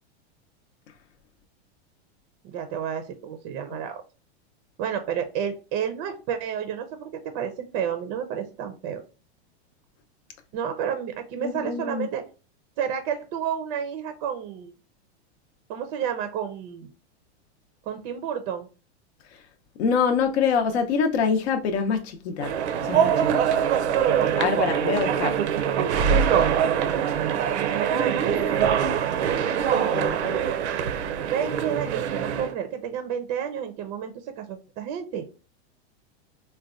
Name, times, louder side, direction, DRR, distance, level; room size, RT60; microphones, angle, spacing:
voice 1, 2.4-4.0 4.8-9.0 10.5-12.2 12.8-14.7 15.7-16.9 17.9-18.7 24.2-25.0 27.2-28.6 31.2-35.2, right 8 dB, 35° right, 0.4 m, -31 dB
voice 2, 11.4-12.1 19.8-22.6 22.8-23.5 24.4-25.4 29.9-30.4, left 6 dB, 70° left, 0.6 m, -25 dB
sound 1, 22.4-32.5, right 8 dB, 90° right, 0.5 m, -23 dB
3.9 x 2.2 x 2.4 m
supercardioid pair, 145°, 33 cm